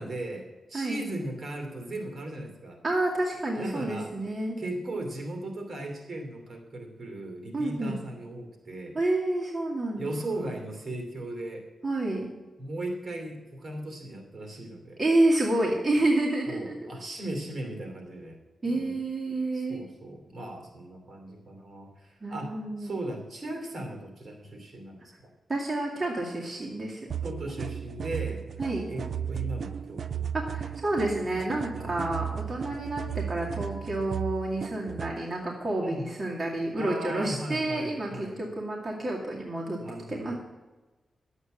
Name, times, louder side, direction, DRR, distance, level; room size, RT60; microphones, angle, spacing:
voice 1, 0.0-2.8 3.6-4.1 4.6-9.0 10.0-11.7 12.6-15.0 16.5-18.4 18.7-19.0 19.5-25.3 27.2-28.4 28.9-30.3 31.7-32.3 32.6-32.9 35.8-36.1 36.8-38.4 39.8-40.4, right 1 dB, 50° right, 3 dB, 2.7 m, -37 dB
voice 2, 2.8-4.6 7.5-7.9 8.9-10.2 11.8-12.3 15.0-16.9 18.6-19.8 22.2-22.9 25.5-27.1 28.6-28.9 30.3-39.8 40.1-40.3, right 2 dB, 30° right, -3 dB, 2.3 m, -29 dB
sound 1, 27.1-35.2, right 8 dB, 65° right, 0.3 m, -35 dB
11.5 x 8.1 x 7.6 m, 1.2 s
wide cardioid pair, 105°, 0 cm